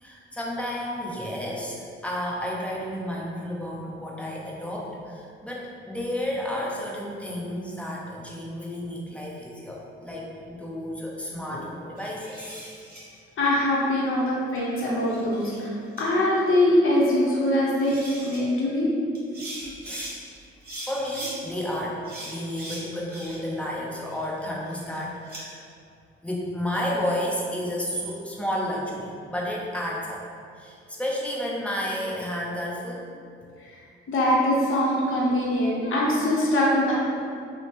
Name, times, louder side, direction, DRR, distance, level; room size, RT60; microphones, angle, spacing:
voice 1, 0.0-12.7 19.9-20.2 20.8-25.6 26.2-30.2 30.6-33.1, equal, 5° left, -4 dB, 0.6 m, -31 dB
sound 1, 12.0-13.0 14.6-15.6 16.0-16.1 17.4-17.5 17.8-18.4 19.1-20.1 20.6-21.4 22.0-23.6 23.9-25.4, right 1 dB, 30° right, 1.1 m, -40 dB
voice 2, 13.4-15.7 16.0-17.9 18.2-18.9 34.1-37.0, left 1 dB, 45° left, -5 dB, 0.8 m, -22 dB
2.7 x 2.1 x 3.1 m, 2.4 s
hypercardioid pair, 45°, 29 cm